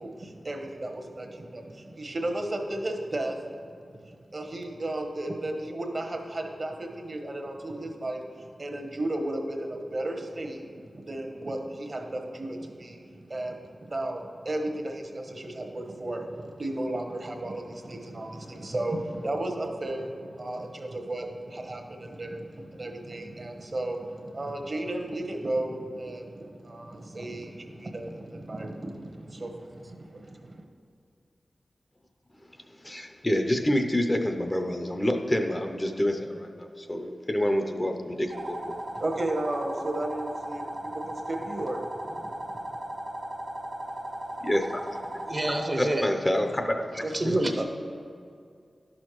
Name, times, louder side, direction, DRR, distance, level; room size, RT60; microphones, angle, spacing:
voice 1, 0.0-10.6 10.9-30.5 38.9-42.8 47.0-47.6, right 1 dB, 50° right, 3 dB, 1.0 m, -34 dB
voice 2, 32.8-38.8 44.4-45.0 45.8-47.4, left 1 dB, 25° left, 5 dB, 0.6 m, -28 dB
sound 1, 38.3-45.6, right 1 dB, 75° right, 1.3 m, -37 dB
voice 3, 45.3-46.1 47.1-47.6, right 1 dB, 30° right, 4 dB, 0.7 m, -27 dB
11.0 x 6.3 x 3.1 m, 2.3 s
wide cardioid pair, 60°, 0 cm